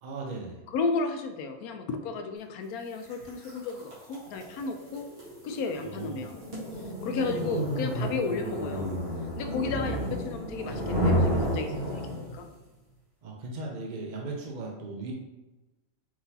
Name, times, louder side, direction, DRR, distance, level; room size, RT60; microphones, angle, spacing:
voice 1, 0.0-0.6 5.8-6.3 7.2-7.6 9.6-10.1 13.2-15.1, right 3 dB, 55° right, -1 dB, 0.5 m, -38 dB
voice 2, 0.7-5.1 5.4-6.4 7.0-8.9 9.4-12.5, left 4 dB, 90° left, 6 dB, 1.1 m, -33 dB
sound 1, 3.1-12.5, equal, 30° right, 1.5 m, -31 dB
4.7 x 3.9 x 2.7 m, 1.1 s
omnidirectional pair, 1.5 m